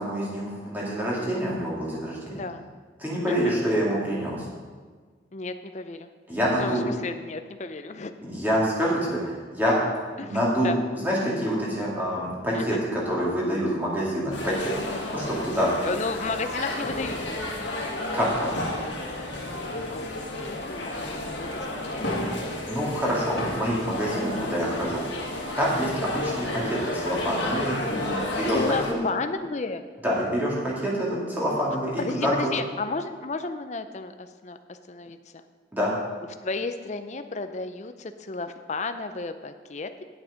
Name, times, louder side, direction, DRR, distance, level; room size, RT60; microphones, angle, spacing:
voice 1, 0.0-2.4 3.0-4.4 6.3-6.8 8.2-9.8 10.2-10.7 11.0-15.9 18.1-18.5 22.6-25.2 25.6-29.0 30.0-32.5 35.7-35.9, equal, 10° right, -6 dB, 2.5 m, -26 dB
voice 2, 2.3-2.7 3.3-3.5 5.3-6.1 6.6-8.1 10.2-10.4 10.6-10.8 12.5-12.8 15.8-17.7 19.7-20.0 20.4-21.5 21.9-22.0 28.5-29.8 32.1-35.2 36.4-40.0, left 3 dB, 40° left, 9 dB, 0.5 m, -33 dB
sound 1, 14.3-28.9, left 1 dB, 70° left, 1.7 m, -31 dB
9.5 x 8.5 x 5.2 m, 1.5 s
head